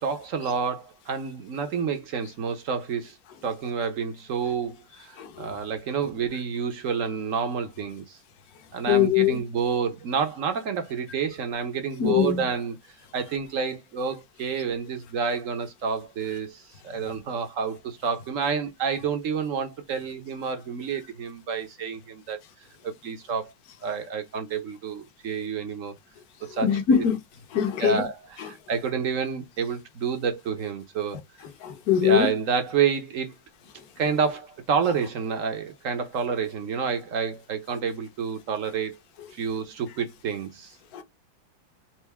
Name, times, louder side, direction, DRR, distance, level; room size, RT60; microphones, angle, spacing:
voice 1, 0.0-3.2 3.4-8.2 8.7-12.8 13.1-22.4 22.8-23.5 23.8-25.9 26.4-27.0 27.8-31.2 32.0-33.3 34.0-39.0 39.3-40.8, right 6 dB, 55° right, 1.0 m, -29 dB
voice 2, 8.9-9.4 12.0-12.4 26.6-27.2 27.5-28.0 31.6-32.3 40.9-41.0, left 9 dB, 55° left, 1.3 m, -22 dB
4.5 x 2.6 x 3.4 m
omnidirectional pair, 2.1 m